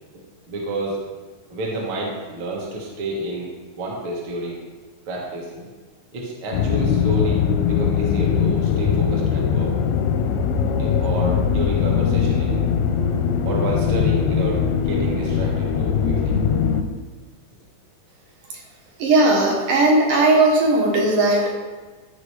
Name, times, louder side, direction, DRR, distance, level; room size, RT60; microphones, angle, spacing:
voice 1, 0.5-1.0 1.5-3.5 3.8-4.6 5.1-5.5 6.1-9.7 10.8-12.6 13.4-16.3 16.9-17.0, right 2 dB, 50° right, -3 dB, 1.6 m, -29 dB
sound 1, 6.5-16.8, left 7 dB, 90° left, 2.6 m, -21 dB
voice 2, 19.0-21.5, right 2 dB, 70° right, -2 dB, 2.5 m, -17 dB
13.5 x 5.0 x 3.2 m, 1.3 s
omnidirectional pair, 4.3 m